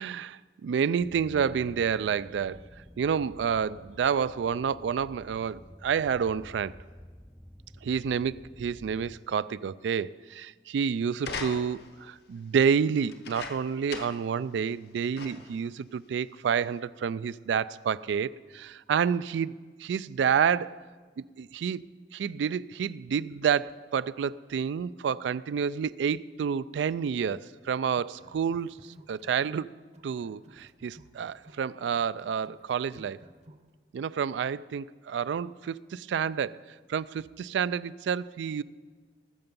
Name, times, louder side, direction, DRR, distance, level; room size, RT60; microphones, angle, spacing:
voice 1, 0.0-2.6 3.0-6.7 7.8-20.8 21.2-21.8 22.1-29.7 30.0-33.2 33.9-36.6 36.9-38.6, right 7 dB, 80° right, 0.3 m, -29 dB
sound 1, 1.0-9.2, equal, ahead, 0.3 m, -50 dB
sound 2, 11.2-12.0 13.1-14.3 14.7-14.8 15.1-15.6 16.4-16.5, left 4 dB, 60° left, 0.9 m, -40 dB
sound 3, 27.9-29.7 29.9-33.7, right 1 dB, 40° right, 0.8 m, -55 dB
19.5 x 6.9 x 5.3 m
head